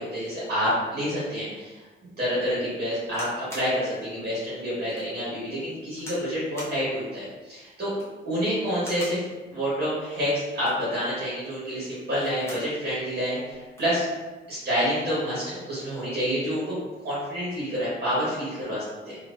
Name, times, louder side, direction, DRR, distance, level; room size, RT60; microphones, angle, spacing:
voice 1, 0.0-1.8 2.2-7.9 8.2-9.2 9.5-14.1 14.5-16.8 17.0-19.2, equal, 50° right, -9 dB, 1.5 m, -28 dB
sound 1, 3.1-3.7 4.3-4.4 4.9-5.1 6.0-6.3 6.6-6.8 7.8-8.2 8.8-9.2 10.5-10.9 12.0-12.7 13.1-13.2 13.4-13.9 14.8-15.1, equal, 15° left, 1.4 m, -42 dB
3.2 x 2.8 x 2.6 m, 1.2 s
cardioid pair, 90°, 20 cm